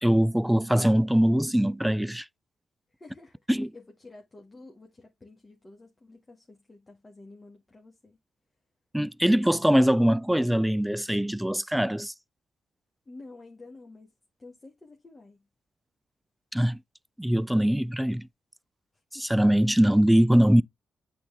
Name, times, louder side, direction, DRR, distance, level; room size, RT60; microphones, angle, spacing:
voice 1, 0.0-2.3 3.5-3.7 8.9-12.1 16.5-16.8 17.2-18.3 19.2-20.6, equal, 5° right, 0.3 m, -22 dB
voice 2, 2.9-8.2 13.1-14.1 14.4-15.5 18.9-19.4, left 2 dB, 30° left, 1.9 m, -50 dB
8.6 x 4.3 x 3.4 m
hypercardioid pair, 40°, 0 cm